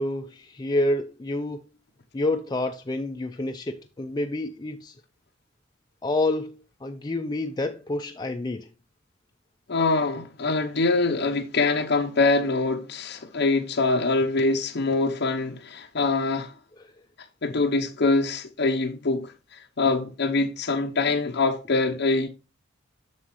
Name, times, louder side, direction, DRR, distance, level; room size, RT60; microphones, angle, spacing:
voice 1, 0.0-1.6 2.1-4.9 6.0-8.7, left 2 dB, 20° left, 0.4 m, -28 dB
voice 2, 9.7-16.5 17.4-22.3, left 3 dB, 55° left, 0.7 m, -24 dB
7.6 x 6.4 x 3.0 m
head